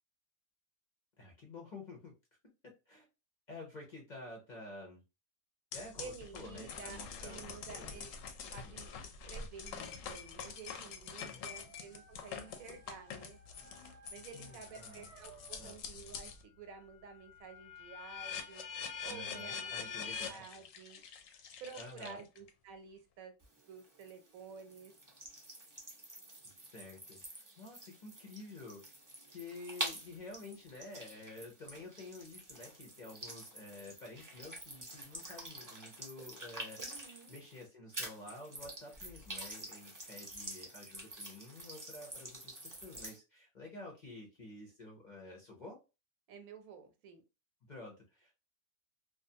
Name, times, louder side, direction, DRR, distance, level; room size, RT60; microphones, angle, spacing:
voice 1, 1.2-2.1 2.6-3.0 3.5-5.0 5.7-8.0 8.6-8.8 11.3-11.7 14.3-15.1 15.6-15.8 19.0-20.4 21.2-21.4 21.7-22.2 26.7-28.8 29.3-45.8 47.6-48.3, left 2 dB, 45° left, 0 dB, 0.6 m, -50 dB
sound 1, 5.7-16.4 16.8-22.5, left 6 dB, 70° left, 0.9 m, -45 dB
voice 2, 6.0-8.1 8.5-13.4 13.8-18.6 19.0-21.0 21.6-23.3 23.7-24.9 36.8-37.4 46.3-47.2, right 6 dB, 80° right, 7 dB, 1.1 m, -51 dB
Dog, 10.8-15.9, right 5 dB, 60° right, 0.8 m, -61 dB
sound 2, 23.4-37.6 37.9-43.2, right 2 dB, 25° right, 0.4 m, -47 dB
2.5 x 2.3 x 2.6 m, 0.28 s
omnidirectional pair, 1.5 m